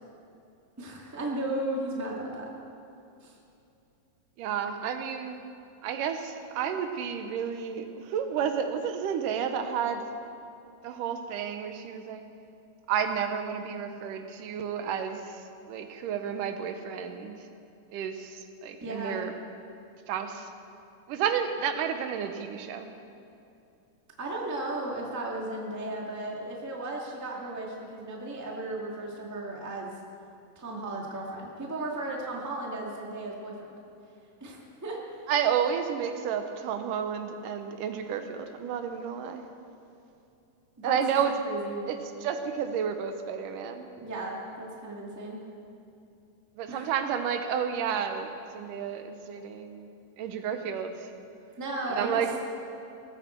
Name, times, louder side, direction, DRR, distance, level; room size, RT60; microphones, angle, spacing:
voice 1, 0.8-2.5 3.2-3.3 18.8-19.2 24.2-29.9 30.5-33.5 34.4-35.0 40.8-41.0 41.4-41.8 44.0-45.4 46.7-46.9 51.6-52.4, right 2 dB, 10° right, -2 dB, 1.2 m, -35 dB
voice 2, 4.4-5.4 5.8-10.1 10.8-12.2 12.9-17.5 17.9-19.3 20.1-20.5 21.1-22.9 35.3-39.5 40.8-41.4 41.9-43.9 46.6-49.9 50.2-51.1 51.9-52.4, right 7 dB, 80° right, 7 dB, 2.4 m, -31 dB
19.0 x 15.0 x 4.5 m, 2.7 s
omnidirectional pair, 3.8 m